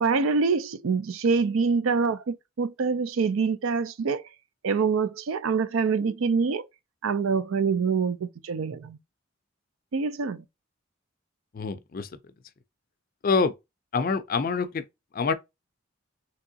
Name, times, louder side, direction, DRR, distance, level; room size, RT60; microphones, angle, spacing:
voice 1, 0.0-4.2 4.6-6.6 7.0-9.0 9.9-10.4, right 5 dB, 85° right, 0.4 m, -25 dB
voice 2, 11.5-12.1 13.2-13.5 13.9-14.8 15.1-15.3, left 4 dB, 45° left, 0.4 m, -25 dB
3.5 x 2.9 x 2.7 m
head